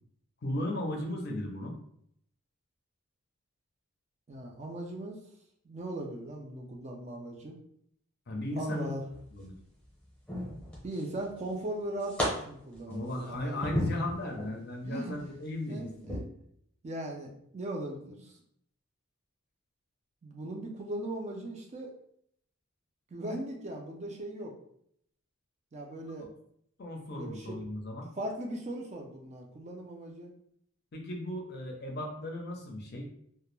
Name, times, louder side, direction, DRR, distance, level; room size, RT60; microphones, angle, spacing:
voice 1, 0.4-1.8 8.3-8.9 9.3-9.5 12.9-16.1 26.2-26.3 26.8-28.1 30.9-33.1, left 1 dB, 45° left, 1 dB, 0.5 m, -36 dB
voice 2, 4.3-5.2 5.6-7.5 8.6-9.0 10.8-13.6 14.8-15.2 15.7-16.2 16.8-18.3 20.2-21.9 23.1-24.5 25.7-26.3 27.1-27.6 28.2-30.3, right 1 dB, 30° right, 0 dB, 0.3 m, -38 dB
sound 1, 9.1-9.6 10.3-11.2 11.5-12.3 12.7-14.6 15.1-15.3 16.0-16.2, left 1 dB, 5° left, 0.7 m, -35 dB
2.2 x 2.1 x 3.0 m, 0.68 s
head